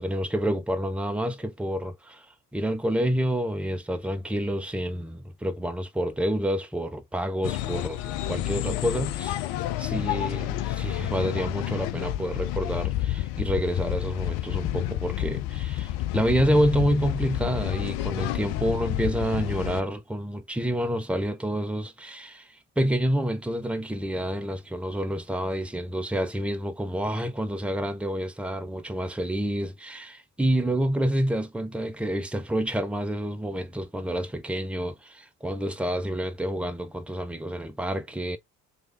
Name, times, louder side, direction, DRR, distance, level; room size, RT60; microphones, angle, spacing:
voice 1, 0.0-2.3 2.5-9.5 9.8-38.4, equal, ahead, 0.6 m, -28 dB
sound 1, 7.4-19.8, left 14 dB, 55° left, 0.5 m, -30 dB
3.2 x 2.7 x 3.3 m
figure-of-eight pair, 45°, 49 cm